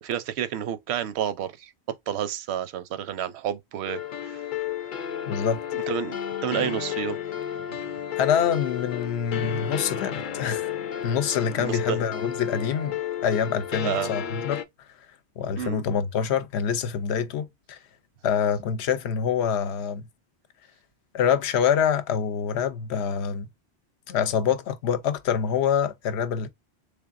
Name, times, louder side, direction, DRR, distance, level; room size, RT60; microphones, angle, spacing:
voice 1, 0.0-1.7 2.1-4.4 5.7-7.2 9.5-9.6 11.6-12.0 13.8-14.1 15.6-15.8, right 10 dB, 80° right, 0.8 m, -30 dB
sound 1, 3.8-14.6, left 10 dB, 60° left, 0.6 m, -32 dB
voice 2, 5.3-5.6 8.2-10.7 11.0-14.6 15.4-17.8 18.2-20.1 21.1-23.5 24.1-26.5, left 7 dB, 90° left, 0.9 m, -26 dB
3.5 x 3.4 x 2.4 m
omnidirectional pair, 1.1 m